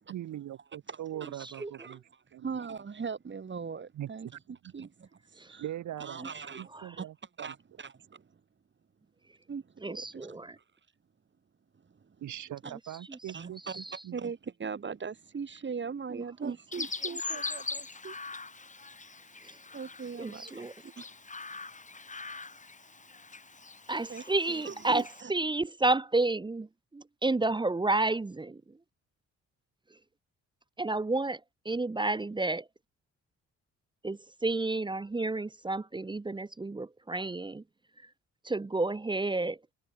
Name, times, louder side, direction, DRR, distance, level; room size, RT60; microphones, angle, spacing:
voice 1, 0.1-2.0 2.3-2.6 4.0-4.4 5.6-6.3 6.6-7.5 12.2-14.2, right 12 dB, 75° right, 3.9 m, -41 dB
voice 2, 0.9-5.6 6.0-7.1 7.4-8.4 9.5-10.6 11.8-12.2 12.6-12.7 13.3-18.2 19.2-19.4 19.7-21.1 24.1-25.3, right 5 dB, 40° right, 4.9 m, -41 dB
voice 3, 9.8-10.5 13.1-13.2 13.7-13.8 16.1-16.2 19.4-19.5 20.2-20.7 23.9-25.0 25.3-26.7 26.9-28.6 30.8-31.4 31.6-32.7 34.0-37.6 38.4-39.6, right 2 dB, 15° right, 0.8 m, -30 dB
Chirp tweet, 16.7-25.2, left 4 dB, 25° left, 2.9 m, -41 dB
cardioid pair, 90°, 30 cm